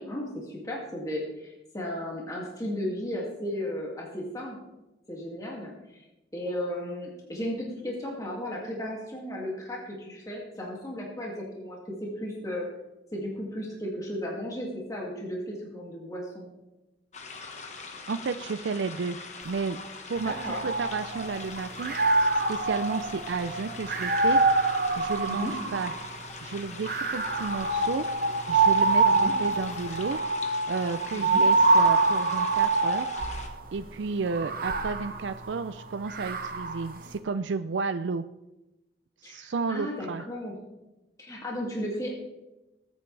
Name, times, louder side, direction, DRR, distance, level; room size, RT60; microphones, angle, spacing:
voice 1, 0.0-4.6 5.1-6.1 6.3-12.7 13.1-16.5 20.2-20.6 25.3-25.6 29.0-29.4 31.1-31.5 39.2-40.6 41.2-42.1, left 1 dB, 20° left, -3 dB, 2.3 m, -35 dB
sound 1, 17.1-33.5, left 4 dB, 40° left, 1.4 m, -42 dB
voice 2, 18.1-19.2 19.4-19.8 20.1-20.3 20.6-24.4 24.7-25.9 26.4-28.0 28.5-30.2 30.7-33.1 33.7-38.2 39.2-40.2, right 4 dB, 85° right, 11 dB, 0.5 m, -32 dB
sound 2, 20.2-21.4 21.8-26.2 26.8-33.5 34.3-36.9, right 3 dB, 50° right, 1.1 m, -25 dB
20.0 x 9.3 x 3.3 m, 1.0 s
head